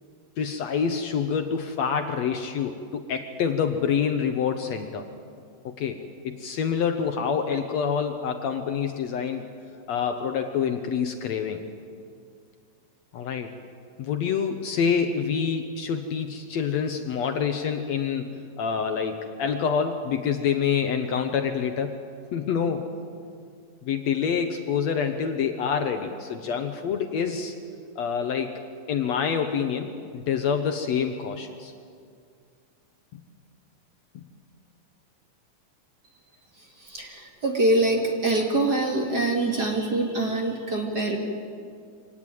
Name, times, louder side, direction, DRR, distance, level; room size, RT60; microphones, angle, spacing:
voice 1, 0.4-5.1 5.7-9.5 9.9-11.6 13.1-13.5 14.0-22.0 22.3-22.9 23.8-27.6 28.0-28.6 28.9-31.7 33.1-33.2 34.1-34.3, left 7 dB, 65° left, 6 dB, 2.0 m, -27 dB
voice 2, 36.8-41.2, right 2 dB, 35° right, 1 dB, 2.3 m, -24 dB
25.0 x 18.5 x 9.2 m, 2.3 s
omnidirectional pair, 3.8 m